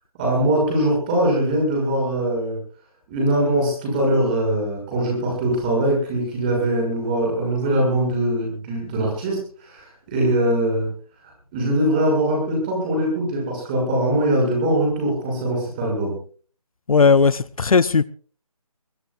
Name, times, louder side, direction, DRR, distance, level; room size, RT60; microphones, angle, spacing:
voice 1, 0.2-2.6 3.1-10.9 11.5-16.1, right 1 dB, 15° right, 6.5 m, -22 dB
voice 2, 16.9-18.0, left 5 dB, 65° left, 0.6 m, -16 dB
22.0 x 21.5 x 2.5 m
figure-of-eight pair, 170°, 19 cm